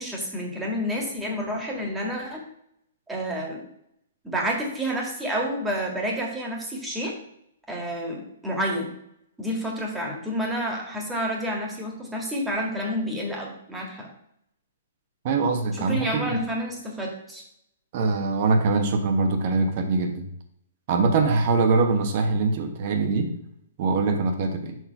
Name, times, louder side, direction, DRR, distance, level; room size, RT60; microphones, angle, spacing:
voice 1, 0.0-2.4 3.1-3.6 4.2-7.1 7.7-8.9 9.4-14.1 15.8-17.4, equal, 10° right, -1 dB, 1.7 m, -29 dB
voice 2, 15.2-16.4 17.9-20.2 20.9-23.3 23.8-24.8, right 3 dB, 45° right, 5 dB, 1.1 m, -23 dB
5.5 x 4.6 x 4.6 m, 0.74 s
figure-of-eight pair, 120°, 0 cm